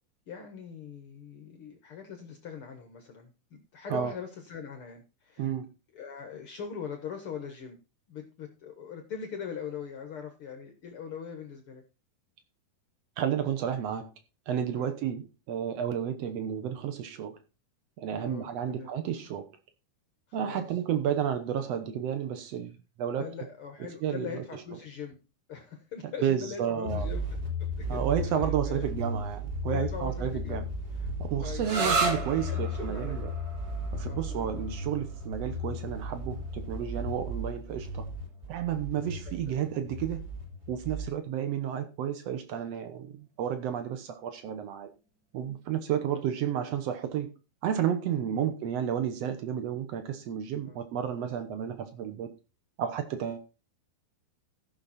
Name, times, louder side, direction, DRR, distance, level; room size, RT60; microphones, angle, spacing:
voice 1, 0.3-5.5 5.9-7.8 8.1-11.8 14.8-14.9 18.2-18.9 20.4-20.7 23.2-25.2 25.5-27.2 27.8-28.9 29.7-31.1 31.4-32.0 32.3-33.2 34.1-34.5 39.0-39.6 46.0-46.2 48.3-48.5 50.7-50.8, left 7 dB, 80° left, 1.2 m, -42 dB
voice 2, 5.4-5.7 13.2-14.1 14.5-17.4 18.0-19.5 20.3-23.3 24.0-24.3 26.2-27.1 27.9-30.6 31.2-33.3 33.9-38.1 38.5-40.3 40.7-44.9 45.3-47.3 47.6-52.3 52.8-53.4, right 9 dB, 80° right, 1.4 m, -31 dB
sound 1, 26.8-41.1, equal, 25° right, 2.8 m, -35 dB
sound 2, 31.6-39.0, right 3 dB, 55° right, 1.2 m, -35 dB
15.0 x 6.4 x 4.2 m
omnidirectional pair, 4.5 m